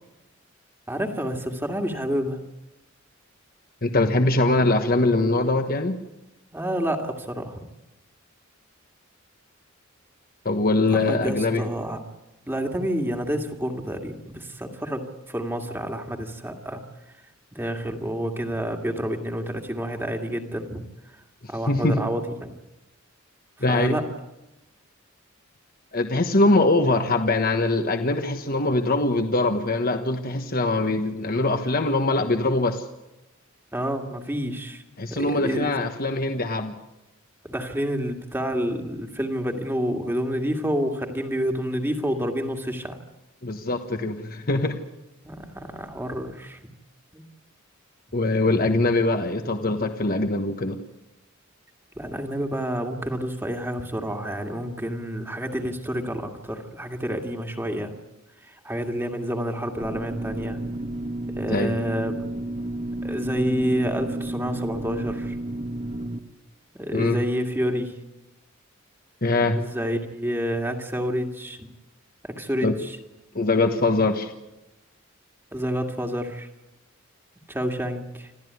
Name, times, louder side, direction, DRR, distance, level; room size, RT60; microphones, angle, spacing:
voice 1, 0.9-2.4 6.5-7.6 10.9-12.0 12.5-16.8 17.5-21.2 21.5-22.6 23.7-24.1 33.7-34.8 35.1-35.7 37.4-43.0 45.2-46.6 47.1-47.2 52.0-57.9 58.4-60.6 61.3-62.4 63.0-65.4 66.7-68.0 69.6-71.7 72.2-73.0 75.5-76.5 77.5-78.3, equal, 10° right, 3 dB, 2.1 m, -29 dB
voice 2, 3.8-6.0 10.4-11.6 21.7-22.0 23.6-23.9 25.9-32.8 35.0-36.7 43.4-44.8 48.1-50.8 61.5-61.8 66.9-67.2 69.2-69.6 72.6-72.7 73.3-74.3, left 2 dB, 45° left, 6 dB, 1.4 m, -22 dB
sound 1, 59.8-66.2, right 1 dB, 35° right, 1.4 m, -31 dB
27.0 x 15.0 x 9.6 m, 0.93 s
head